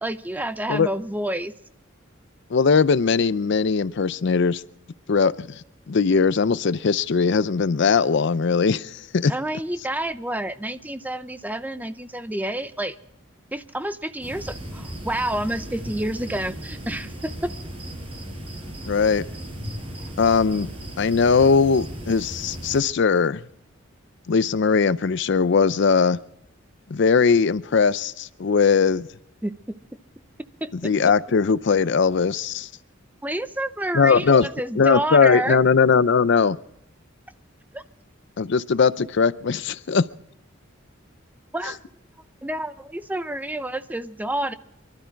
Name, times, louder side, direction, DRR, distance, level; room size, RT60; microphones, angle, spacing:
voice 1, 0.0-1.5 9.3-13.0 13.5-17.5 29.4-29.5 30.6-30.9 33.2-35.6 37.7-37.8 41.5-41.8 42.4-44.5, right 1 dB, 10° right, 11 dB, 0.6 m, -29 dB
voice 2, 2.5-4.6 5.1-5.6 5.9-9.3 18.9-19.2 20.2-20.7 21.0-23.4 24.3-26.2 26.9-29.1 30.8-32.7 33.9-34.5 34.8-36.6 38.4-40.0, left 5 dB, 60° left, 17 dB, 0.5 m, -20 dB
sound 1, 14.2-22.8, right 1 dB, 30° right, 5.3 m, -36 dB
24.0 x 12.5 x 4.6 m, 0.79 s
head